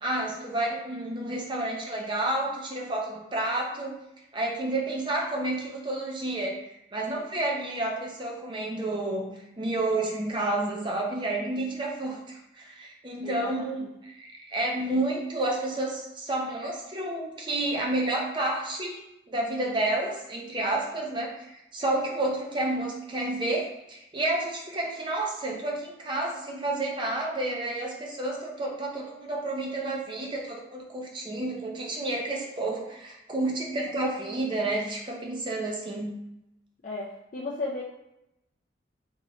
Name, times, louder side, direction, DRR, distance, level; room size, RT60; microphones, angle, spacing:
voice 1, 0.0-4.0 4.3-6.6 6.9-19.0 19.3-36.1, right 2 dB, 25° right, -1 dB, 0.5 m, -30 dB
voice 2, 13.2-13.9 36.8-37.8, left 3 dB, 45° left, -4 dB, 0.4 m, -35 dB
3.6 x 3.0 x 3.0 m, 0.85 s
head